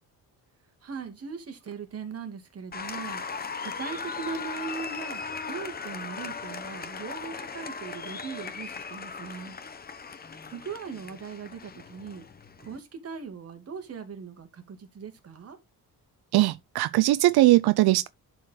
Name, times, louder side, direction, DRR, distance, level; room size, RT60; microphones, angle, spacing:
voice 1, 0.8-3.2 3.6-5.2 5.5-9.6 10.5-12.3 12.6-15.6, right 5 dB, 40° right, 2.3 m, -39 dB
Applause, 2.7-12.8, left 5 dB, 25° left, 0.9 m, -38 dB
voice 2, 16.3-18.1, right 17 dB, 85° right, 0.6 m, -20 dB
11.5 x 4.6 x 3.7 m
cardioid pair, 150°, 37 cm